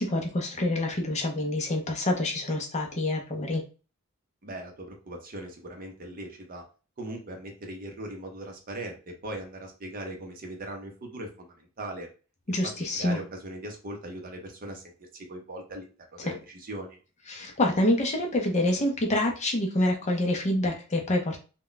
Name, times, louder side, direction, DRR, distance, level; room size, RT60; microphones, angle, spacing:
voice 1, 0.0-3.6 12.5-13.2 17.3-21.4, left 1 dB, 30° left, 2 dB, 0.5 m, -27 dB
voice 2, 4.4-6.6 7.0-12.1 12.6-15.9 16.1-17.0, right 1 dB, 40° right, 3 dB, 0.6 m, -39 dB
2.2 x 2.1 x 3.8 m, 0.35 s
head